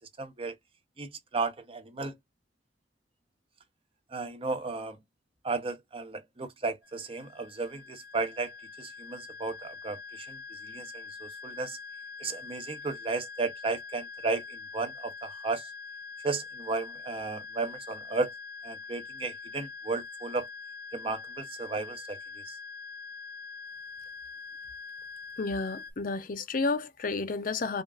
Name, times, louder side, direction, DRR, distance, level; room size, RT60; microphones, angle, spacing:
voice 1, 0.2-0.5 1.0-2.1 4.1-5.0 5.4-8.5 8.8-11.8 12.2-15.7 16.2-18.3 18.6-20.5 20.9-22.2 22.5-22.6, right 3 dB, 30° right, 0.7 m, -34 dB
sound 1, 6.8-25.9, left 5 dB, 70° left, 0.9 m, -44 dB
voice 2, 25.4-27.8, left 3 dB, 50° left, 0.6 m, -31 dB
5.1 x 2.5 x 2.4 m
head